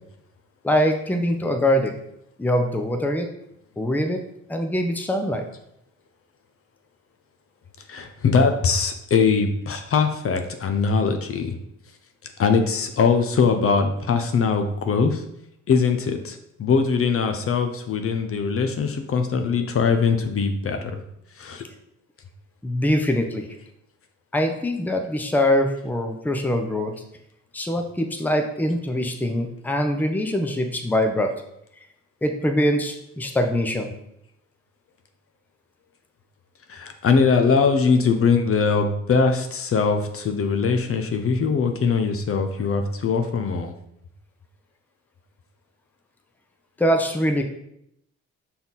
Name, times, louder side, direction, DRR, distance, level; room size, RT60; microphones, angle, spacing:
voice 1, 0.6-1.9 2.4-3.3 3.8-4.2 4.5-5.4 22.6-23.4 24.3-26.9 27.5-31.3 32.2-33.9 46.8-47.4, left 1 dB, 5° left, 5 dB, 0.7 m, -23 dB
voice 2, 7.9-11.6 12.4-15.2 15.7-21.0 21.4-21.6 36.7-43.7, left 5 dB, 45° left, 6 dB, 0.8 m, -21 dB
5.6 x 4.3 x 3.9 m, 0.77 s
cardioid pair, 90°, 30 cm